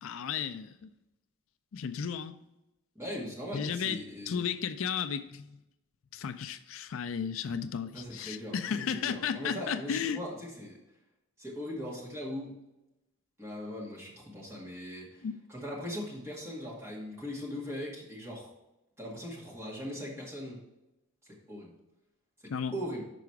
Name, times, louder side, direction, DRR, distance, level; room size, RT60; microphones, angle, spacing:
voice 1, 0.0-0.9 1.7-2.4 3.5-5.4 6.1-10.2 15.2-15.4 22.5-22.7, left 7 dB, 75° left, 0.4 m, -34 dB
voice 2, 3.0-4.4 7.9-10.8 11.4-12.5 13.4-15.2 15.5-18.5 19.0-20.6 21.5-21.7 22.4-23.0, equal, 15° right, 2.0 m, -40 dB
6.1 x 4.8 x 4.6 m
head